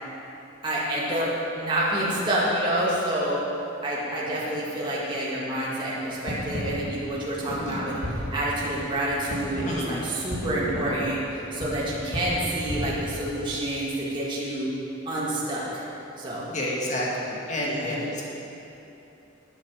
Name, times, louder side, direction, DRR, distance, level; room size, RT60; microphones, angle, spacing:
voice 1, 0.6-3.4 3.8-7.9 8.3-14.7 15.1-15.8 16.2-16.5 17.6-18.0, right 1 dB, 25° right, -8 dB, 2.2 m, -28 dB
sound 1, 6.1-13.8, equal, 75° left, 2.4 m, -34 dB
voice 2, 9.6-10.0 16.5-18.2, left 1 dB, 35° left, -4 dB, 1.9 m, -29 dB
11.0 x 7.4 x 6.6 m, 3.0 s
head